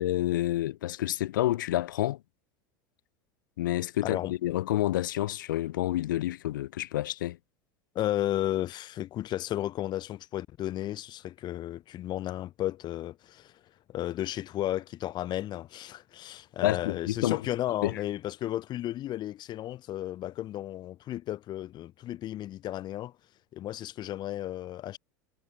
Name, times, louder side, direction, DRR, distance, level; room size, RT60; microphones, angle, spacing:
voice 1, 0.0-2.2 3.6-7.4 16.6-17.4 17.8-18.0, left 14 dB, 80° left, 3.8 m, -29 dB
voice 2, 4.0-4.3 7.9-13.6 13.9-23.1 23.5-25.0, left 13 dB, 45° left, 3.2 m, -33 dB
hypercardioid pair, 100°, 10 cm